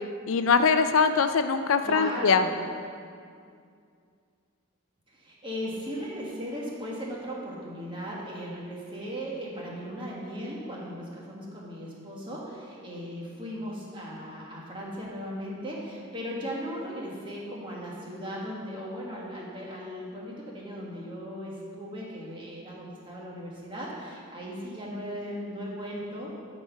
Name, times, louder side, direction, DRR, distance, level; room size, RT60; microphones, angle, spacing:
voice 1, 0.3-2.4, left 5 dB, 65° left, 9 dB, 0.4 m, -22 dB
voice 2, 1.8-2.5 5.1-26.3, equal, 20° right, -4 dB, 1.6 m, -37 dB
11.5 x 4.3 x 5.7 m, 2.3 s
head